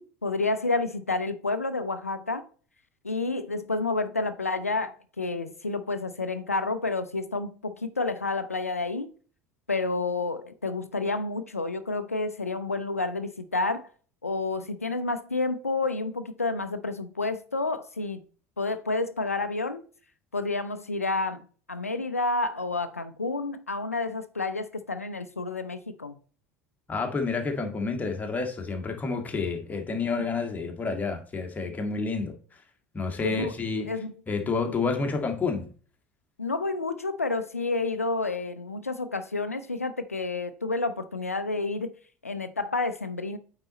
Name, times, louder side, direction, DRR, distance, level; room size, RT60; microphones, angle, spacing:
voice 1, 0.0-2.4 3.0-9.1 9.7-13.9 14.2-18.2 18.6-19.8 20.3-26.1 29.9-30.0 33.2-33.5 33.9-34.1 34.5-34.6 36.4-41.9 42.2-43.4, left 3 dB, 90° left, 0.5 m, -30 dB
voice 2, 26.9-32.3 32.9-33.9 34.3-35.7, left 4 dB, 20° left, 1.7 m, -29 dB
8.8 x 4.0 x 4.1 m
figure-of-eight pair, 70°, 8 cm